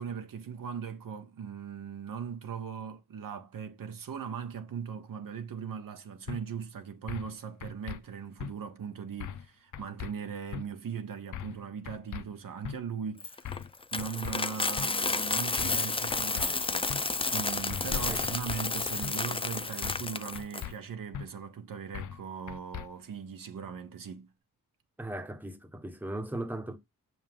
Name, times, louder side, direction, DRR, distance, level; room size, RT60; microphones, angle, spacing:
voice 1, 0.0-13.6 13.9-16.9 17.3-24.3, right 7 dB, 70° right, 1.2 m, -39 dB
sound 1, 6.3-6.4 7.1-7.3 7.6-8.0 8.4-8.5 9.2-9.5 9.7-10.1 10.5-10.6 11.3-11.6 11.8-12.2 12.6-12.8 13.4-13.7 14.0-14.4 14.8-14.9 15.6-15.8 16.1-16.5 16.9-17.0 17.7-18.0 18.2-18.6 19.0-19.1 19.8-20.1 20.3-20.7 21.1-21.3 21.9-22.2 22.5-22.9, left 9 dB, 60° left, 0.6 m, -39 dB
Coin (dropping), 13.2-20.6, left 3 dB, 15° left, 0.5 m, -31 dB
sound 2, 17.5-19.5, left 5 dB, 40° left, 0.9 m, -42 dB
voice 2, 18.0-18.4 25.0-26.8, right 1 dB, 5° right, 1.3 m, -38 dB
6.6 x 5.4 x 3.6 m
cardioid pair, 80°, 34 cm